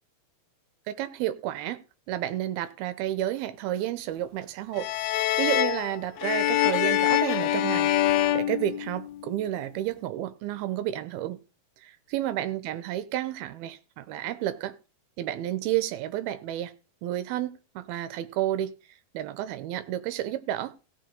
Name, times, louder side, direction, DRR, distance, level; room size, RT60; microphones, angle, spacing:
voice 1, 0.9-1.8 2.1-4.9 5.4-7.9 8.3-11.4 11.8-14.7 15.2-16.7 17.0-18.7 19.1-20.7, right 13 dB, 80° right, 2.6 m, -31 dB
sound 1, 4.8-9.4, left 14 dB, 85° left, 2.7 m, -25 dB
17.0 x 6.6 x 3.9 m
omnidirectional pair, 4.6 m